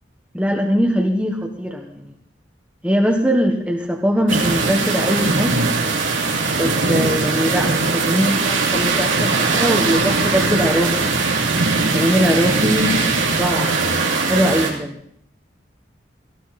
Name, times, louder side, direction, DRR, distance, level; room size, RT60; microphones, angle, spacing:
voice 1, 0.3-2.0 2.8-5.5 6.5-11.1 11.9-13.8 14.2-14.9, equal, 5° right, 1 dB, 1.5 m, -21 dB
sound 1, 4.3-14.7, right 3 dB, 90° right, 3.0 m, -20 dB
17.5 x 15.0 x 4.3 m, 0.63 s
head